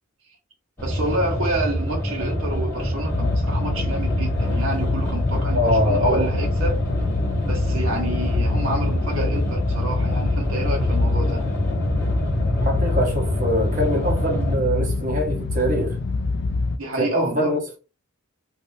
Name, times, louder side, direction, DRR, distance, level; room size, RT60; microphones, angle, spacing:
sound 1, 0.8-14.6, equal, 10° left, 1.6 m, -26 dB
voice 1, 0.8-6.8 7.4-11.4 16.8-17.5, right 1 dB, 70° right, 1.2 m, -29 dB
sound 2, 3.1-16.8, left 3 dB, 50° left, 0.4 m, -25 dB
voice 2, 5.5-6.4 12.6-16.0 17.0-17.6, equal, 35° right, 1.2 m, -23 dB
3.3 x 2.8 x 2.7 m
head